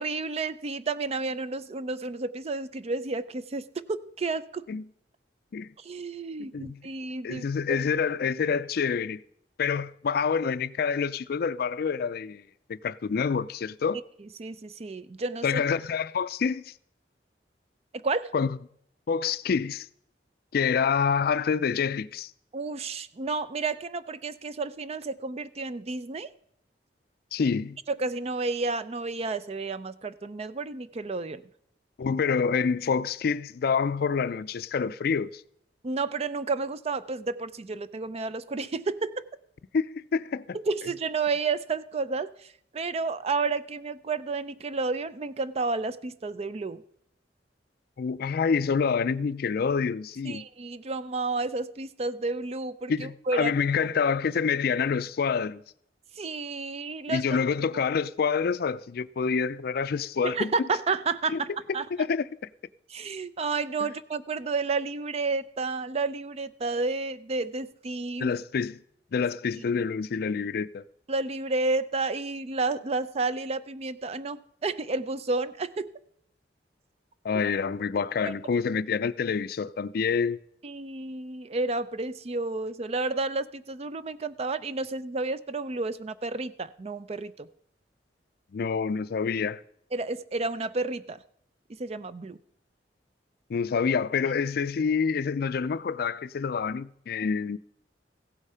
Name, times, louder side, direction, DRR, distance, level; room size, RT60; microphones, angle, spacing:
voice 1, 0.0-4.7 5.8-7.5 14.4-15.6 18.0-18.3 22.5-26.3 27.9-31.4 35.8-39.2 40.5-46.8 50.3-53.5 56.2-57.4 57.7-57.8 60.2-61.9 62.9-68.3 69.7-69.8 71.1-75.9 78.3-78.4 80.6-87.5 89.9-91.2 91.8-92.4, right 3 dB, 35° right, 0.5 m, -31 dB
voice 2, 6.4-6.8 7.2-9.2 9.6-12.4 12.7-14.0 15.4-16.7 18.3-18.6 19.1-19.9 20.5-22.3 27.3-27.8 32.0-35.4 39.7-40.6 48.0-50.5 52.9-55.6 57.1-60.5 61.3-61.4 62.0-62.3 63.8-63.9 68.2-68.8 69.1-70.8 77.2-80.4 88.5-89.6 93.5-97.6, left 6 dB, 60° left, 0.4 m, -27 dB
15.5 x 8.2 x 5.6 m
head